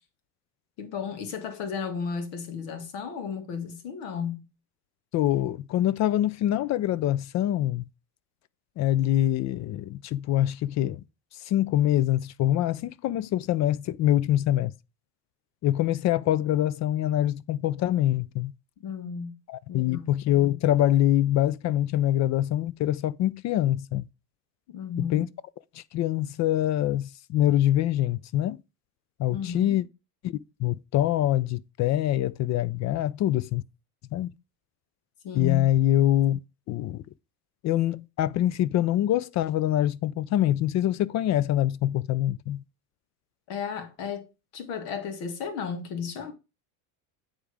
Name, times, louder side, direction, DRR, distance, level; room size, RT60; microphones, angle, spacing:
voice 1, 0.8-4.5 18.8-19.3 19.7-20.1 24.7-25.3 29.3-29.8 35.2-35.7 43.5-44.3 44.5-46.3, left 6 dB, 70° left, 2.0 m, -34 dB
voice 2, 5.1-7.8 8.8-11.0 11.4-14.7 15.6-18.5 19.5-24.1 25.0-25.3 25.7-28.6 29.2-29.8 30.2-33.6 34.1-34.3 35.3-36.4 36.7-37.0 37.6-42.6, left 13 dB, 40° left, 0.4 m, -24 dB
9.1 x 3.5 x 4.9 m
supercardioid pair, 105°, 46 cm